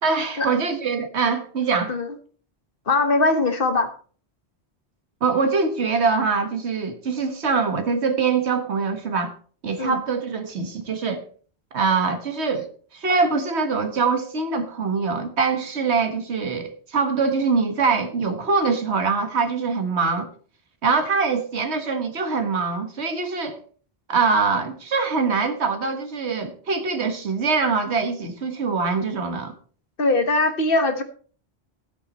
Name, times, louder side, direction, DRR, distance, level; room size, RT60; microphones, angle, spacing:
voice 1, 0.0-1.9 5.2-9.3 9.6-11.2 11.7-20.3 20.8-23.6 24.1-29.5, right 4 dB, 85° right, 1.7 m, -23 dB
voice 2, 2.9-4.0 9.8-10.0 30.0-31.0, left 2 dB, 55° left, 1.4 m, -21 dB
13.0 x 8.7 x 4.2 m
omnidirectional pair, 1.1 m